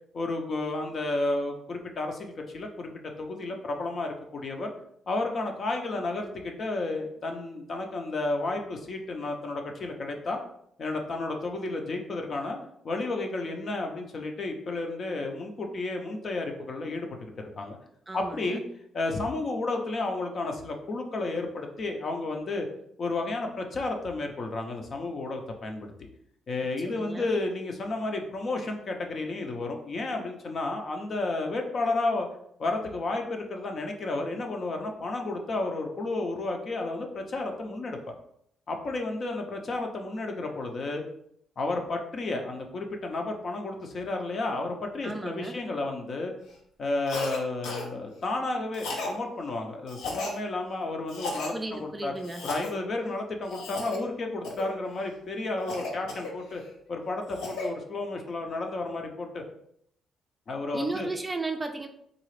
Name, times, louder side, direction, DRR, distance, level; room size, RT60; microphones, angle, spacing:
voice 1, 0.1-2.9 3.2-4.7 5.1-10.4 10.8-12.6 12.8-17.8 18.1-18.6 18.9-22.7 23.0-25.9 26.5-32.3 32.6-38.0 38.7-41.0 41.6-46.3 46.8-52.1 52.4-56.6 56.9-59.4 60.5-61.1, left 2 dB, 50° left, 3 dB, 0.6 m, -32 dB
voice 2, 18.1-18.6 26.8-27.3 45.0-45.6 51.5-52.5 60.7-61.9, right 2 dB, 15° right, 5 dB, 0.4 m, -35 dB
Cough, 47.1-47.4 47.6-47.9 48.7-49.2 49.9-50.4 51.1-51.5 52.2-52.7 53.5-54.0 54.4-54.7 55.7-56.6 57.1-57.7, left 2 dB, 85° left, 0.7 m, -35 dB
3.8 x 2.4 x 3.2 m, 0.70 s
cardioid pair, 90°, 0 cm